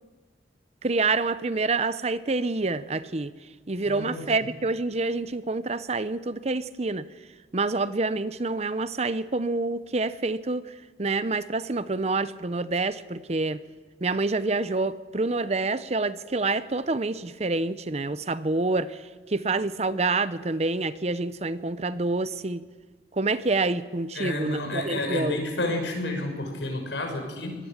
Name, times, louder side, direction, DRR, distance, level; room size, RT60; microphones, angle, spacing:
voice 1, 0.8-7.1 7.5-13.6 14.0-22.6 23.1-25.4, right 3 dB, 35° right, 15 dB, 0.7 m, -27 dB
voice 2, 3.8-4.2 24.2-27.6, left 1 dB, 80° left, 3 dB, 5.8 m, -30 dB
24.5 x 19.5 x 7.3 m, 1.3 s
head